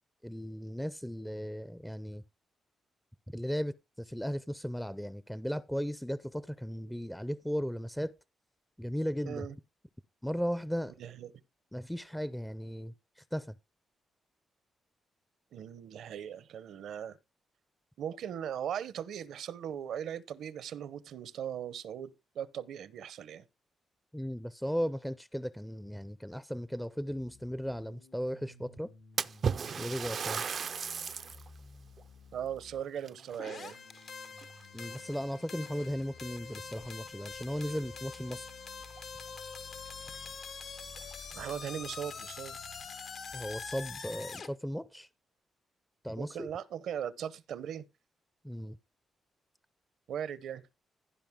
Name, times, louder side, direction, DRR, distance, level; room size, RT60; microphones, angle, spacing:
voice 1, 0.2-2.2 3.3-8.1 8.8-9.5 10.2-10.9 11.7-13.5 24.1-28.9 29.8-30.4 34.7-38.5 43.3-45.1 46.0-46.5 48.4-48.8, equal, 5° left, 0.5 m, -36 dB
voice 2, 11.0-11.3 15.5-17.2 18.0-23.4 32.3-33.8 41.3-42.6 46.2-47.9 50.1-50.6, right 9 dB, 80° right, 0.8 m, -39 dB
sound 1, 27.1-44.0, left 4 dB, 80° left, 3.5 m, -56 dB
Splash splatter, 29.2-31.5 32.0-32.1 33.0-34.0 34.4-34.8 35.6-35.7 36.2-36.3 38.5-38.6 38.9-39.0 39.6-39.7 40.1-40.2 40.9-41.5, right 6 dB, 55° right, 0.4 m, -35 dB
sound 2, 33.4-44.5, left 5 dB, 65° left, 1.0 m, -45 dB
15.5 x 5.3 x 3.6 m
cardioid pair, 75°, 0 cm